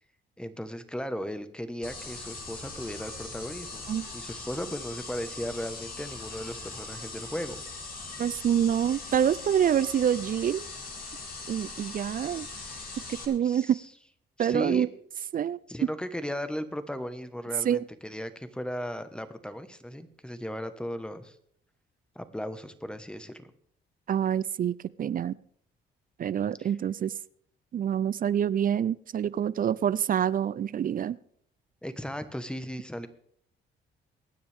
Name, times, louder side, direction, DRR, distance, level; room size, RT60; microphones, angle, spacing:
voice 1, 0.4-7.6 13.4-13.8 14.4-14.9 15.7-21.4 22.1-23.5 26.6-26.7 31.8-33.1, equal, 5° left, 10 dB, 1.3 m, -36 dB
sound 1, 1.8-13.3, left 3 dB, 45° left, 3.2 m, -41 dB
voice 2, 8.2-10.7 11.5-12.5 13.3-13.8 14.4-14.9 15.3-15.6 17.6-17.8 24.1-25.3 26.2-27.1 27.7-31.2, right 9 dB, 45° right, 20 dB, 0.4 m, -26 dB
23.5 x 9.5 x 3.6 m, 0.65 s
cardioid pair, 90°, 20 cm